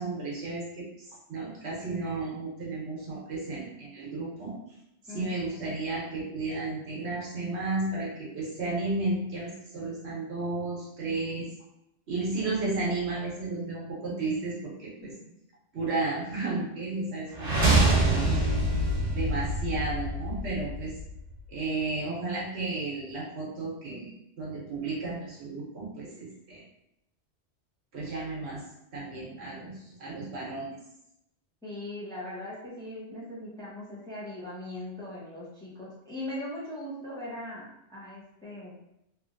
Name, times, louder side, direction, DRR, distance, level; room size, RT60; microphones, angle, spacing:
voice 1, 0.0-4.5 5.1-11.5 12.1-15.1 15.7-18.5 19.1-20.9 21.5-26.6 27.9-28.6 28.9-30.8, right 3 dB, 65° right, -5 dB, 1.1 m, -33 dB
sound 1, 17.3-21.3, right 2 dB, 85° right, 1.3 m, -25 dB
voice 2, 31.6-38.8, left 1 dB, 5° left, -8 dB, 0.8 m, -40 dB
3.0 x 2.5 x 2.5 m, 0.82 s
omnidirectional pair, 1.2 m